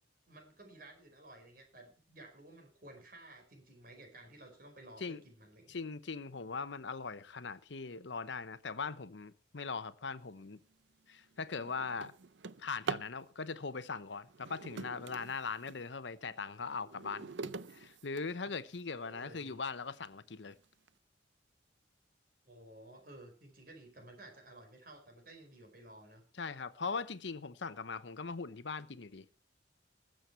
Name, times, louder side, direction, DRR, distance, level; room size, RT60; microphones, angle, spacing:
voice 1, 0.3-5.7 19.0-19.6 22.4-26.2, right 1 dB, 50° right, 4.9 m, -54 dB
voice 2, 5.7-10.6 11.1-12.1 12.6-20.5 26.4-29.3, left 4 dB, 75° left, 0.9 m, -40 dB
Drawer open or close, 10.5-10.7 11.2-13.2 14.2-15.8 16.4-18.8 19.5-19.6 20.0-20.1 20.5-20.9, right 4 dB, 80° right, 0.6 m, -44 dB
21.0 x 7.8 x 4.4 m
head